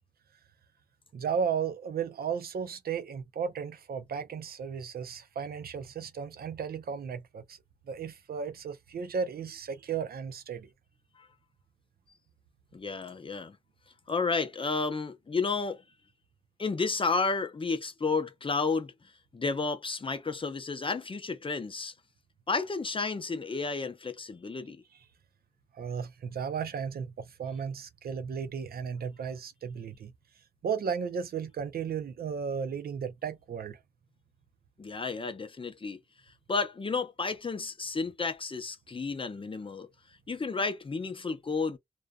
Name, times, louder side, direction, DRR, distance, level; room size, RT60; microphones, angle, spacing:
voice 1, 1.1-7.6 7.9-10.7 25.7-30.1 30.6-33.8, right 6 dB, 65° right, 0.5 m, -34 dB
voice 2, 12.7-13.6 14.1-15.8 16.6-18.9 19.3-21.9 22.5-24.8 34.8-36.0 36.5-39.9 40.3-41.8, left 4 dB, 35° left, 0.5 m, -32 dB
2.5 x 2.2 x 2.3 m
cardioid pair, 65°, 16 cm